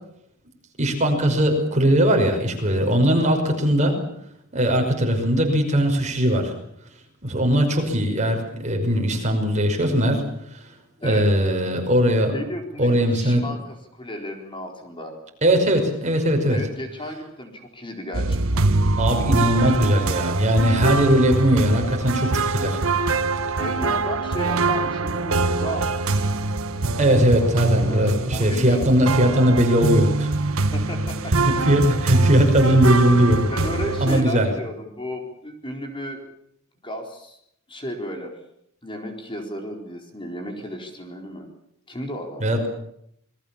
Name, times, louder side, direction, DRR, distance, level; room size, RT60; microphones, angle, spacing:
voice 1, 0.8-4.0 4.5-6.5 7.2-10.2 11.0-12.3 12.8-13.5 15.4-16.6 19.0-22.8 27.0-30.3 31.4-33.5 34.0-34.5 42.4-42.7, equal, 35° right, 3 dB, 5.7 m, -19 dB
voice 2, 12.3-15.1 16.5-18.7 23.6-26.4 27.9-29.5 30.7-31.7 33.5-36.2 36.8-37.4 37.7-38.4 38.8-41.5 41.9-42.7, equal, 25° left, 4 dB, 4.2 m, -34 dB
sound 1, 18.1-34.2, right 3 dB, 75° right, 1.4 m, -24 dB
27.5 x 21.0 x 7.2 m, 0.73 s
head